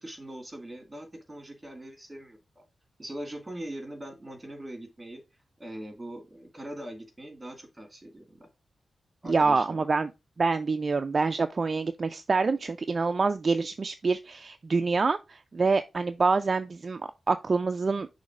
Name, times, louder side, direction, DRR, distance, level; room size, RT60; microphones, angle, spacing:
voice 1, 0.0-2.6 3.0-5.2 5.6-8.5 9.2-9.9, right 1 dB, 20° right, 2.1 m, -41 dB
voice 2, 9.3-10.1 10.4-17.0 17.3-18.1, right 4 dB, 45° right, 0.4 m, -26 dB
6.3 x 3.2 x 4.9 m
wide cardioid pair, 95°, 0 cm